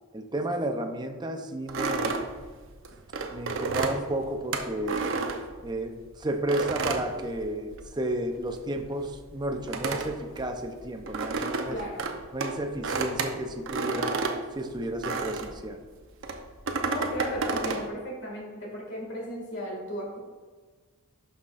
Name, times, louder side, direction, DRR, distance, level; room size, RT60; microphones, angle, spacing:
voice 1, 0.1-2.2 3.3-5.1 5.6-11.8 12.3-14.2 14.6-15.8, right 1 dB, 20° right, 4 dB, 0.6 m, -32 dB
Wooden Stairs, 1.7-6.0 6.5-8.0 8.2-15.6 16.2-17.9, right 3 dB, 60° right, 0.7 m, -31 dB
voice 2, 11.7-12.1 16.8-20.2, equal, 55° left, -2 dB, 2.1 m, -35 dB
12.0 x 5.6 x 2.5 m, 1.5 s
head